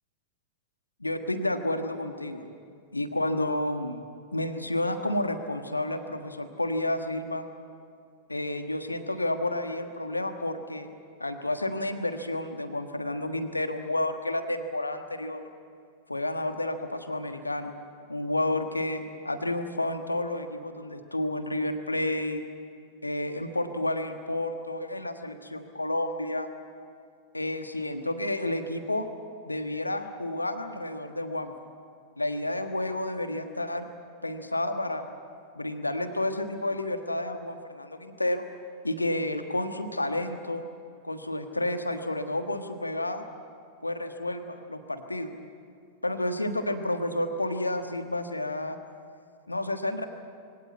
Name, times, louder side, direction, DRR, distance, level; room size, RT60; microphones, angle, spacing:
voice 1, 1.0-2.4 2.9-4.0 4.3-7.5 8.3-10.9 11.2-15.4 16.1-17.7 18.1-22.4 23.0-26.5 27.3-29.1 29.4-31.5 32.2-33.9 34.2-35.0 35.5-38.5 38.8-40.7 41.0-43.2 43.8-45.3 46.0-48.8 49.5-50.1, left 1 dB, 85° left, 8 dB, 1.4 m, -30 dB
23.0 x 17.5 x 8.4 m, 2.3 s
figure-of-eight pair, 90°, 0 cm